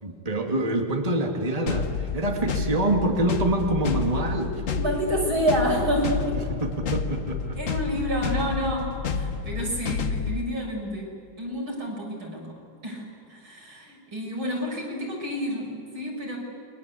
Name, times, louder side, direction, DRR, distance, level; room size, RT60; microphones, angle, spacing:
voice 1, 0.0-4.6 6.6-7.6, right 1 dB, 20° right, 3 dB, 2.4 m, -26 dB
sound 1, 1.7-10.4, left 6 dB, 45° left, 1.3 m, -30 dB
voice 2, 4.7-6.3 7.6-12.5 12.8-16.4, equal, 90° right, -1 dB, 7.4 m, -29 dB
29.0 x 23.0 x 8.5 m, 2.6 s
omnidirectional pair, 2.2 m